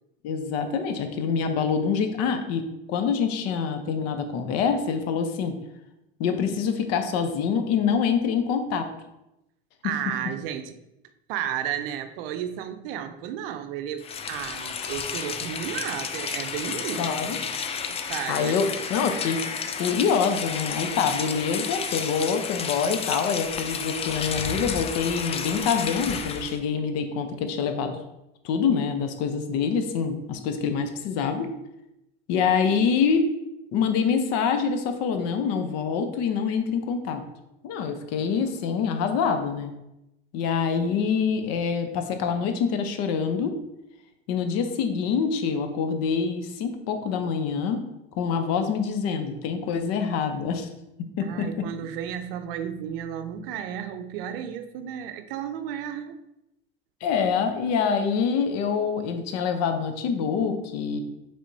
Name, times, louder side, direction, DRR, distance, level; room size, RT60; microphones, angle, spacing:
voice 1, 0.2-5.5 6.2-8.9 17.0-17.4 18.3-19.5 19.8-28.0 28.4-31.5 32.3-33.3 33.7-37.2 37.6-39.7 40.3-43.6 44.3-47.8 48.1-50.7 51.2-51.7 57.0-61.0, left 6 dB, 60° left, 7 dB, 0.7 m, -25 dB
voice 2, 9.8-10.7 11.3-17.3 17.9-18.5 51.2-56.2, right 9 dB, 75° right, 9 dB, 0.5 m, -33 dB
Rain, 14.0-26.6, left 6 dB, 20° left, 0.3 m, -32 dB
5.1 x 3.6 x 2.7 m, 0.89 s
supercardioid pair, 95°, 29 cm